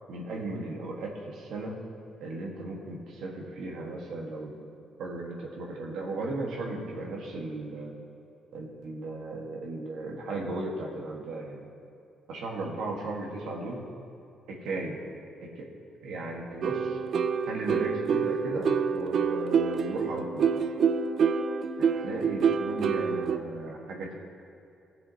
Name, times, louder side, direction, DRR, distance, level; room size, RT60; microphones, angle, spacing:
voice 1, 0.1-1.8 2.2-4.6 5.0-7.9 8.5-11.7 12.3-13.9 14.5-15.0 15.4-15.7 16.0-17.0 17.4-20.5 22.0-24.1, right 2 dB, 80° right, -1 dB, 1.4 m, -36 dB
sound 1, 16.6-23.4, right 6 dB, 60° right, 0.4 m, -27 dB
15.5 x 6.8 x 2.8 m, 2.7 s
cardioid pair, 90°, 0 cm